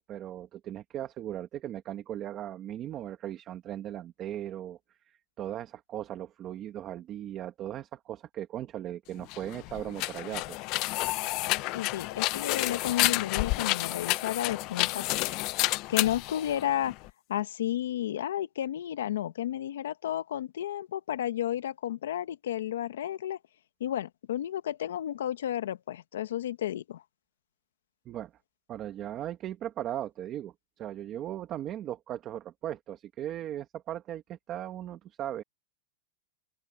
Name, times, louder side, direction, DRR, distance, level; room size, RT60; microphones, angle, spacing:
voice 1, 0.0-4.8 5.1-10.6 28.0-28.3 28.7-35.4, right 11 dB, 25° right, 1.4 m, -38 dB
sound 1, 9.2-17.1, left 20 dB, 35° left, 0.6 m, -30 dB
voice 2, 11.7-15.1 15.4-15.5 15.9-16.9 17.3-23.4 23.8-27.0, left 11 dB, 85° left, 1.2 m, -32 dB
open air
supercardioid pair, 165°, 0 cm